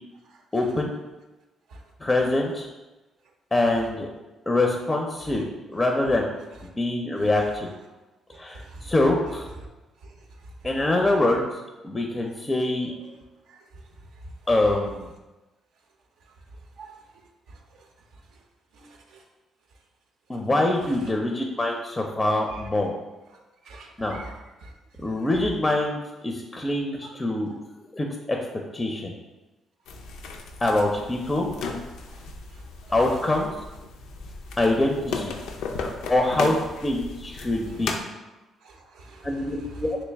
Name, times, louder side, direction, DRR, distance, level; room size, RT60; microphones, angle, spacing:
voice 1, 0.5-0.9 2.0-2.7 3.5-4.1 4.5-6.3 6.8-7.7 8.3-9.5 10.6-11.4 11.8-12.9 14.5-15.1 20.3-22.9 24.0-24.2 25.0-27.5 27.9-28.4 28.7-29.1 30.6-31.5 32.9-33.5 34.6-35.3 35.8-38.0 39.2-40.0, left 2 dB, 20° left, 1 dB, 0.4 m, -24 dB
voice 2, 8.3-8.9 10.0-10.1 13.0-13.1 13.5-13.6 16.8-17.2 17.5-17.6 18.7-19.2 22.5-22.6 23.6-24.3 24.6-24.7 27.0-27.2 38.6-39.3 39.7-39.8, right 2 dB, 80° right, 2 dB, 0.5 m, -45 dB
sound 1, 29.9-38.0, left 4 dB, 85° left, 0.4 m, -35 dB
3.1 x 3.1 x 3.4 m, 1.1 s
cardioid pair, 90°, 0 cm